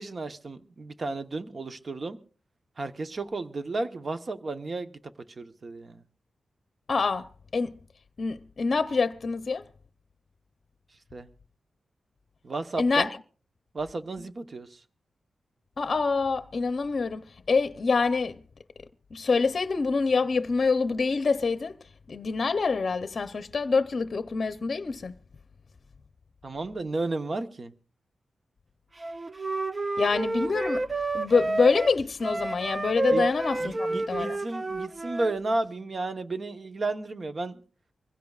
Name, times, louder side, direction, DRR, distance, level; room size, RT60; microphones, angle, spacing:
voice 1, 0.0-2.2 2.8-4.9 5.4-6.0 11.1-11.3 12.4-13.1 13.7-14.8 26.4-27.7 33.1-33.2 33.6-37.6, right 2 dB, 45° right, 1.0 m, -33 dB
voice 2, 6.9-7.3 7.5-7.7 8.2-9.6 12.8-13.1 15.8-18.4 19.1-21.8 22.1-25.1 30.0-34.4, left 4 dB, 50° left, 0.7 m, -26 dB
Wind instrument woodwind instrument, 29.0-35.4, right 2 dB, 30° right, 0.6 m, -30 dB
25.0 x 16.0 x 2.4 m
wide cardioid pair, 110°, 0 cm